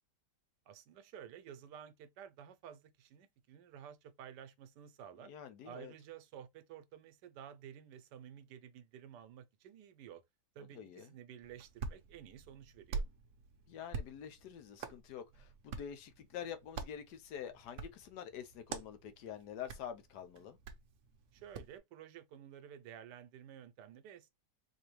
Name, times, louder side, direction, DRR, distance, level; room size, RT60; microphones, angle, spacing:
voice 1, 0.7-5.3 5.6-10.2 10.5-13.0 21.3-24.3, right 9 dB, 90° right, 1.2 m, -53 dB
voice 2, 5.2-5.9 10.6-11.1 13.7-20.6, left 9 dB, 75° left, 1.3 m, -47 dB
Hands, 11.4-21.8, right 5 dB, 60° right, 0.9 m, -47 dB
4.2 x 2.7 x 3.0 m
omnidirectional pair, 1.8 m